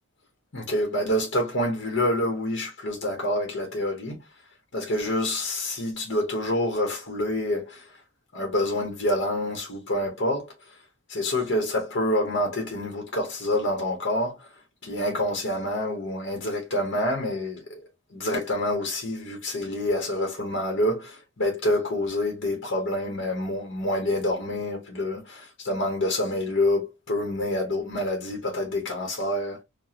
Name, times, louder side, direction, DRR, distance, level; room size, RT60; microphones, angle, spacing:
voice 1, 0.5-4.2 4.7-8.0 8.3-10.8 11.1-14.5 14.8-17.8 18.1-29.6, left 1 dB, 55° left, 1.0 m, -27 dB
4.9 x 2.3 x 2.8 m
head